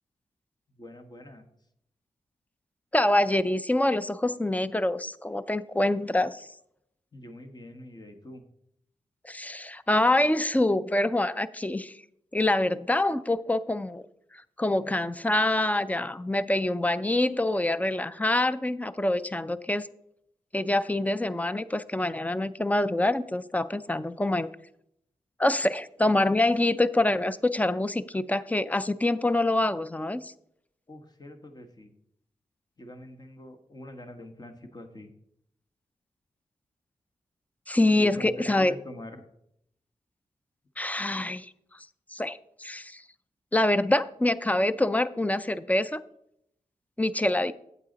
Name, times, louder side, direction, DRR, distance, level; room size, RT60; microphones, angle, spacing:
voice 1, 0.7-1.5 7.1-8.4 30.9-31.9 32.8-35.1 38.0-39.2, left 1 dB, 30° left, 6 dB, 1.3 m, -44 dB
voice 2, 2.9-6.5 9.2-11.9 12.3-14.0 14.6-19.9 20.5-24.5 25.4-30.3 37.7-38.7 40.8-41.5 42.1-43.0 43.5-46.0 47.0-47.5, left 1 dB, 10° left, 15 dB, 0.4 m, -25 dB
8.4 x 8.3 x 4.0 m, 0.75 s
cardioid pair, 70°, 13 cm